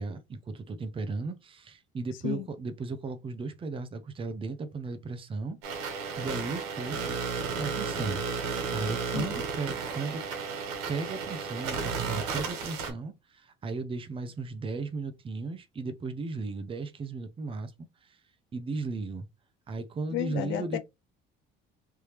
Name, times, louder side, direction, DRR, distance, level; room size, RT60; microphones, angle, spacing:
voice 1, 0.0-7.2 7.5-10.2 10.9-17.7 18.0-18.2 18.5-19.3 19.7-20.8, right 4 dB, 25° right, 0.7 m, -36 dB
sound 1, 5.6-12.9, right 5 dB, 85° right, 1.5 m, -33 dB
voice 2, 20.1-20.8, left 13 dB, 70° left, 0.6 m, -32 dB
3.4 x 2.8 x 3.2 m
cardioid pair, 115°, 21 cm